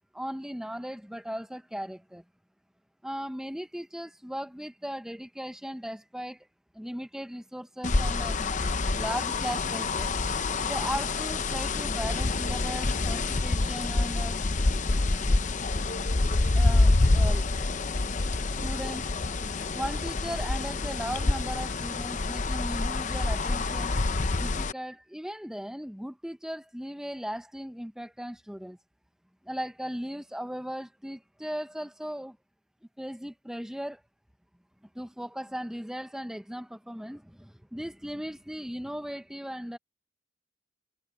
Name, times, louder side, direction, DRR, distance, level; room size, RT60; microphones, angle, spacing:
voice 1, 0.1-2.2 3.0-6.5 6.7-8.6 9.0-10.1 10.6-14.4 16.5-17.5 18.4-19.1 19.7-23.9 24.4-28.8 29.4-32.4 33.0-34.0 34.9-39.8, equal, 5° right, 0.8 m, -37 dB
sound 1, 7.8-24.7, left 3 dB, 40° left, 0.7 m, -27 dB
head